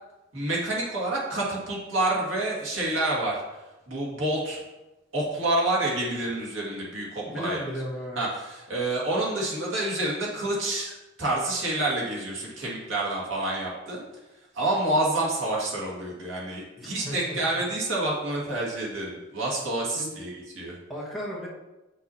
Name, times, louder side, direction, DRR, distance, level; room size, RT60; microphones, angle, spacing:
voice 1, 0.3-3.4 3.9-4.6 5.1-7.6 8.2-10.9 11.2-14.1 14.5-20.8, right 2 dB, 80° right, -4 dB, 2.1 m, -28 dB
voice 2, 7.2-8.2 16.8-17.4 20.0-20.2 20.9-21.5, equal, ahead, -7 dB, 1.5 m, -35 dB
7.8 x 6.0 x 2.8 m, 1.0 s
head